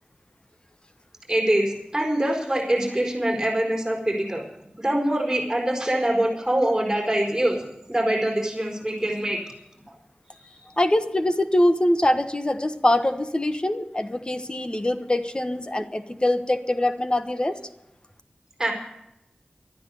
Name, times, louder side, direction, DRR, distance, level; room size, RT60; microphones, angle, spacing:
voice 1, 1.3-4.4 4.8-7.6 7.9-9.4 10.3-10.6 18.6-18.7, right 1 dB, 10° right, 0 dB, 4.9 m, -24 dB
voice 2, 10.8-17.6, left 1 dB, 30° left, 9 dB, 1.2 m, -23 dB
12.5 x 9.8 x 9.8 m, 0.86 s
wide cardioid pair, 55°, 3 cm